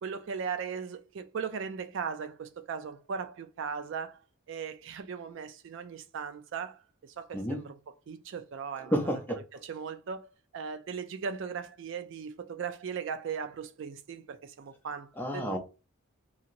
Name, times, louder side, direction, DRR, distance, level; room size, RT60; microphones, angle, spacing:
voice 1, 0.0-4.2 4.5-7.8 8.1-8.9 9.5-15.6, right 6 dB, 55° right, 0.3 m, -38 dB
voice 2, 8.9-9.4 15.2-15.6, equal, 10° left, 0.5 m, -30 dB
2.8 x 2.8 x 2.5 m
head